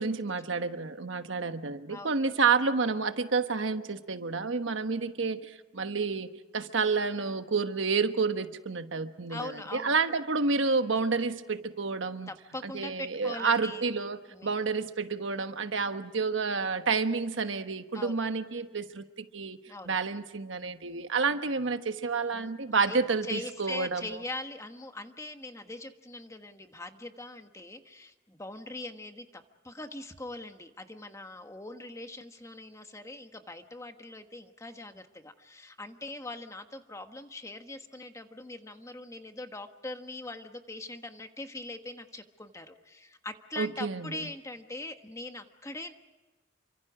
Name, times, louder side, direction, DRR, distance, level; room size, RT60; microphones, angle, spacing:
voice 1, 0.0-6.3 6.5-12.3 12.6-19.6 19.9-24.1 43.6-44.3, right 4 dB, 75° right, 9 dB, 1.2 m, -29 dB
voice 2, 9.3-10.0 12.3-13.8 14.3-14.6 17.9-18.2 19.7-20.0 22.3-22.5 22.9-45.9, left 2 dB, 15° left, 7 dB, 1.3 m, -42 dB
28.5 x 25.0 x 4.9 m, 1.1 s
head